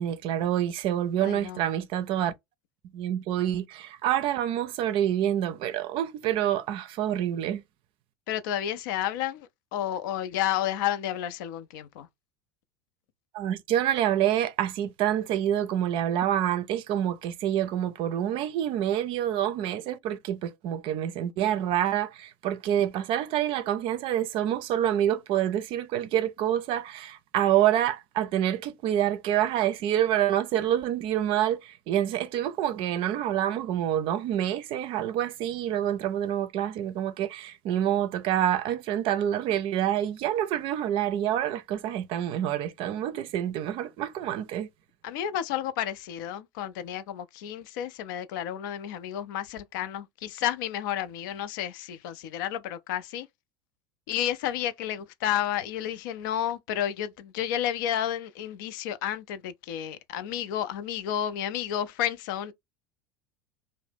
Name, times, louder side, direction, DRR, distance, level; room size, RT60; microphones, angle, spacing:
voice 1, 0.0-2.3 2.9-7.6 13.3-44.7, right 11 dB, 50° right, 0.5 m, -27 dB
voice 2, 1.2-1.6 8.3-12.1 45.0-53.3 54.1-62.5, left 11 dB, 65° left, 0.5 m, -31 dB
2.7 x 2.0 x 3.3 m
hypercardioid pair, 80°, 12 cm